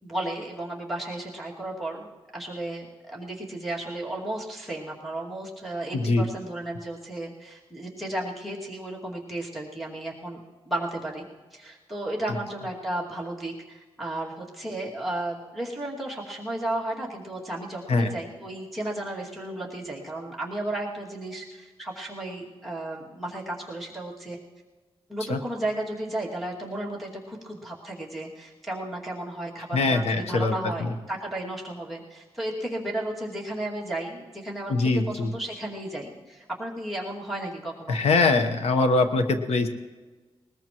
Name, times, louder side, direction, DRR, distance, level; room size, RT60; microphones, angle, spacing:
voice 1, 0.0-11.2 11.5-24.4 25.1-38.0, right 1 dB, ahead, -3 dB, 2.4 m, -34 dB
voice 2, 29.7-30.5 34.7-35.3 37.9-39.7, left 3 dB, 85° left, 7 dB, 1.1 m, -22 dB
20.0 x 20.0 x 3.1 m, 1.3 s
wide cardioid pair, 135°, 10 cm